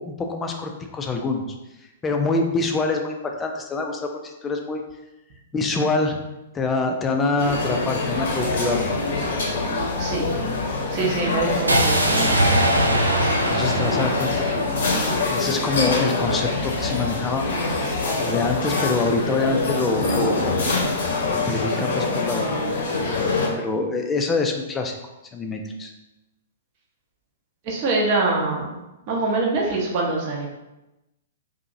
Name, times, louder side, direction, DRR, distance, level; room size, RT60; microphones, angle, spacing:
voice 1, 0.0-1.4 2.0-4.8 5.5-6.2 6.5-8.8 13.4-14.6 14.9-17.4 17.8-20.5 21.3-24.9 25.3-25.9, left 3 dB, 15° left, 3 dB, 0.4 m, -25 dB
sound 1, 7.4-23.5, left 3 dB, 60° left, 0.7 m, -25 dB
voice 2, 10.0-10.3 10.9-12.4 27.6-28.7 29.1-30.5, right 3 dB, 40° right, -2 dB, 0.7 m, -24 dB
sound 2, 11.7-15.7, right 1 dB, 85° right, 0.4 m, -22 dB
2.7 x 2.6 x 2.6 m, 0.99 s
figure-of-eight pair, 110°, 0 cm